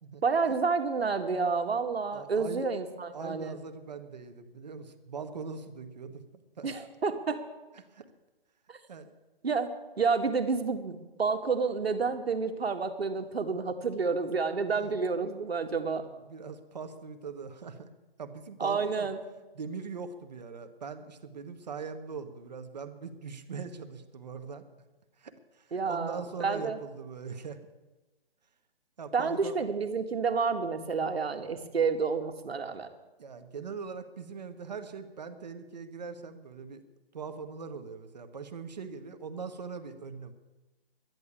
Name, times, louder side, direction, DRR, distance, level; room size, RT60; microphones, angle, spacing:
voice 1, 0.2-3.6 6.6-7.4 8.7-8.8 9.4-9.7 10.0-16.0 18.6-19.2 25.7-26.8 29.1-32.9, right 5 dB, 80° right, 6 dB, 1.9 m, -29 dB
voice 2, 2.1-2.7 3.1-6.2 6.6-6.7 7.7-8.1 8.9-9.1 14.7-15.0 16.3-17.9 18.2-19.1 19.5-24.6 25.2-27.6 29.0-29.7 33.2-36.8 37.1-40.3, right 5 dB, 45° right, 8 dB, 1.3 m, -41 dB
11.5 x 10.5 x 8.4 m, 1.1 s
hypercardioid pair, 170°, 30 cm